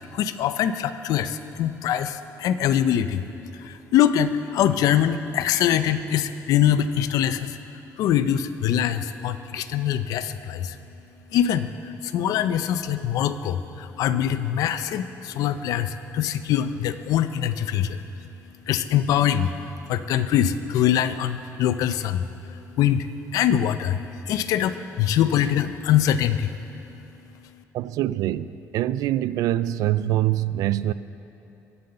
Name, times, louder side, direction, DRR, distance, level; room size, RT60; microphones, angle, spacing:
voice 1, 0.1-3.2 3.5-7.6 8.0-10.8 11.3-18.0 18.7-23.1 23.3-24.0 24.3-26.5, left 10 dB, 85° left, 0.6 m, -23 dB
voice 2, 27.7-30.9, right 13 dB, 85° right, 0.4 m, -24 dB
23.0 x 7.9 x 6.8 m
cardioid pair, 130°, 6 cm